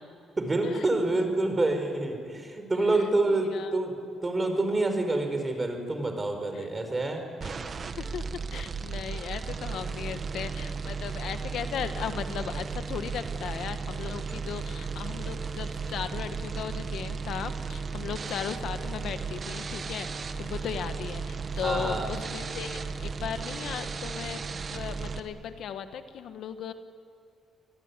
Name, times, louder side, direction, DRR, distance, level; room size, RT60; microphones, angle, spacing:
voice 1, 0.4-7.3 21.6-22.1, right 2 dB, 25° right, 6 dB, 5.0 m, -27 dB
voice 2, 3.3-3.8 6.5-6.7 7.4-7.5 8.0-8.2 8.5-20.1 20.4-24.5 24.7-26.7, left 8 dB, 70° left, 9 dB, 1.4 m, -36 dB
sound 1, 7.4-25.2, right 5 dB, 45° right, 1.6 m, -35 dB
27.5 x 19.5 x 9.7 m, 2.5 s
cardioid pair, 90°, 0 cm